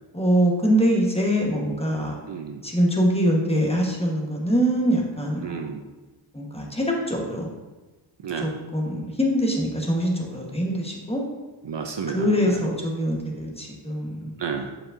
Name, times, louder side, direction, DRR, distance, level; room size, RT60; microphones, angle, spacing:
voice 1, 0.1-2.2 2.6-5.7 6.3-7.5 8.4-11.2 12.1-14.3, equal, 10° left, -1 dB, 1.2 m, -23 dB
voice 2, 2.3-2.6 5.4-5.8 8.2-8.5 11.6-12.6 14.4-14.7, right 6 dB, 60° right, 4 dB, 0.6 m, -31 dB
7.2 x 5.0 x 2.6 m, 1.2 s
wide cardioid pair, 60°, 48 cm